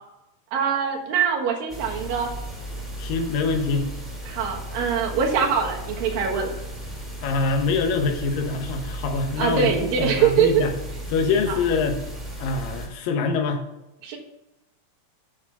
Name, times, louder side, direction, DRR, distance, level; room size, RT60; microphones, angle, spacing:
voice 1, 0.5-2.3 4.3-6.5 9.4-10.6 11.5-11.6 14.0-14.2, right 7 dB, 85° right, 1 dB, 3.2 m, -23 dB
sound 1, 1.7-12.9, right 1 dB, ahead, 1.9 m, -35 dB
voice 2, 3.0-3.9 7.2-10.7 11.1-12.0 12.4-13.6, left 4 dB, 80° left, 5 dB, 2.7 m, -24 dB
8.4 x 6.3 x 5.8 m, 0.95 s
omnidirectional pair, 3.9 m